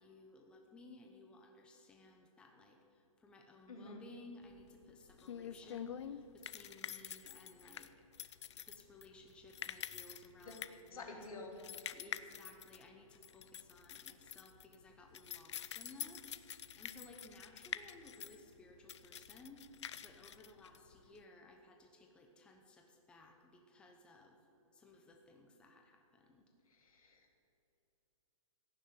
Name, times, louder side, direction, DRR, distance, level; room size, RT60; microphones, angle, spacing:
voice 1, 0.0-7.9 8.7-11.5 11.9-24.4 24.7-26.4, left 2 dB, 5° left, 2 dB, 0.8 m, -58 dB
sound 1, 4.5-21.2, left 9 dB, 55° left, 0.6 m, -48 dB
voice 2, 10.9-11.6 26.7-27.3, left 3 dB, 90° left, 1 dB, 3.1 m, -49 dB
16.0 x 7.3 x 9.4 m, 3.0 s
hypercardioid pair, 165°, 18 cm